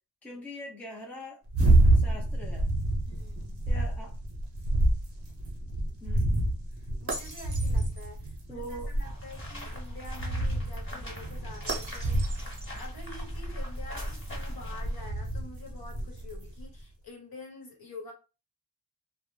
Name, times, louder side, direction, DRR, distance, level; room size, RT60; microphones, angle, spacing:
voice 1, 0.2-1.4 1.9-2.7 3.7-4.1 6.0-6.4 8.5-8.9, equal, 5° left, 0.6 m, -42 dB
sound 1, 1.5-16.6, right 1 dB, 35° right, 0.7 m, -28 dB
voice 2, 3.1-3.7 6.7-12.4 12.8-18.1, left 2 dB, 55° left, 1.0 m, -47 dB
sound 2, 9.0-15.1, equal, 30° left, 1.3 m, -41 dB
2.1 x 2.1 x 3.1 m
wide cardioid pair, 120°, 42 cm